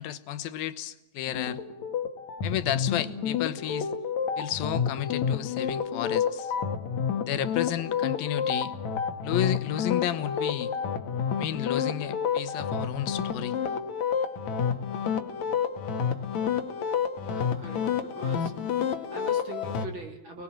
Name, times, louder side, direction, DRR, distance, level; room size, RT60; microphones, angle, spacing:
voice 1, 0.0-1.6 2.4-4.0 4.4-6.5 7.2-8.7 9.2-10.7 11.4-13.6, left 12 dB, 85° left, 12 dB, 3.0 m, -32 dB
sound 1, 1.3-19.9, left 7 dB, 55° left, 2.8 m, -29 dB
voice 2, 17.2-18.5 18.8-20.4, right 1 dB, 35° right, 3 dB, 3.1 m, -43 dB
29.5 x 21.0 x 7.4 m, 0.91 s
omnidirectional pair, 4.1 m